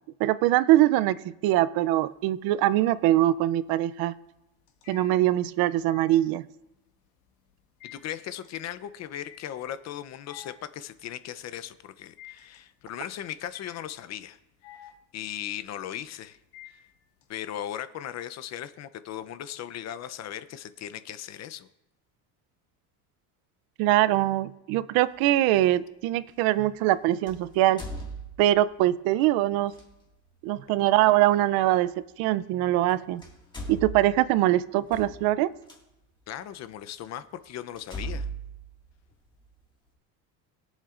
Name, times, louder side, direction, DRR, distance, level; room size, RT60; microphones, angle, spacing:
voice 1, 0.2-1.2 1.4-4.1 4.9-6.5 23.8-27.8 28.4-29.7 30.4-33.2 33.7-35.5, right 14 dB, 65° right, 16 dB, 0.6 m, -23 dB
sound 1, 1.9-2.5 2.9-17.4, left 10 dB, 75° left, 1.9 m, -52 dB
voice 2, 7.8-14.4 14.8-16.4 16.6-16.8 17.3-21.7 36.3-38.3, left 11 dB, 45° left, 13 dB, 0.7 m, -38 dB
sound 2, 25.2-25.3 27.3-28.7 29.7-29.9 31.7-31.8 32.8-32.9 33.2-35.8 36.5-36.6 37.0-37.1 37.8-39.5, right 2 dB, 10° left, 1.9 m, -39 dB
21.5 x 7.4 x 2.5 m, 0.91 s
cardioid pair, 125°, 39 cm